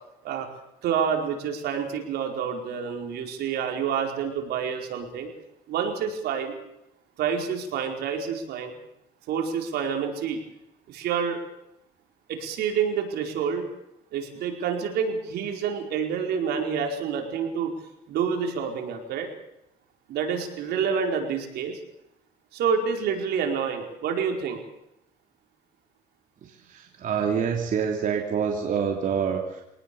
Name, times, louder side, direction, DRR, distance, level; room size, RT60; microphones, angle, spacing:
voice 1, 0.8-5.3 5.7-6.5 7.2-8.7 9.3-10.4 10.9-11.4 12.3-13.7 14.1-17.7 18.1-19.3 20.1-21.8 22.5-24.6, right 7 dB, 75° right, 3 dB, 4.7 m, -28 dB
voice 2, 26.4-29.6, right 7 dB, 50° right, 1 dB, 3.1 m, -27 dB
24.5 x 19.0 x 7.1 m, 0.87 s
cardioid pair, 110°, 17 cm